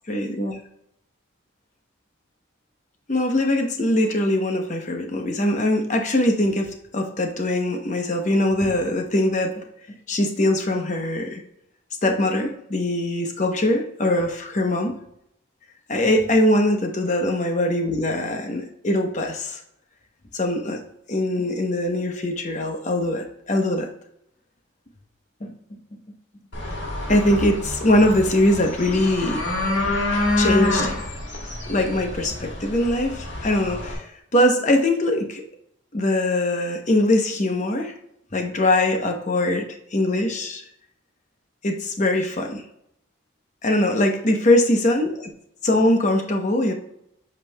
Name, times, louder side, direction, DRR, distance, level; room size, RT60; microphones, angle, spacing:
voice 1, 0.1-0.6 3.1-9.6 10.1-11.4 12.0-14.9 15.9-19.6 20.3-20.8 21.1-23.9 25.4-25.5 27.1-29.4 30.4-31.0 31.7-35.4 35.9-37.9 38.3-40.6 41.6-42.6 43.6-45.3 45.6-46.7, left 1 dB, 35° left, 4 dB, 0.9 m, -22 dB
sound 1, 26.5-33.9, left 2 dB, 55° left, 1.6 m, -27 dB
8.0 x 5.4 x 2.3 m, 0.74 s
head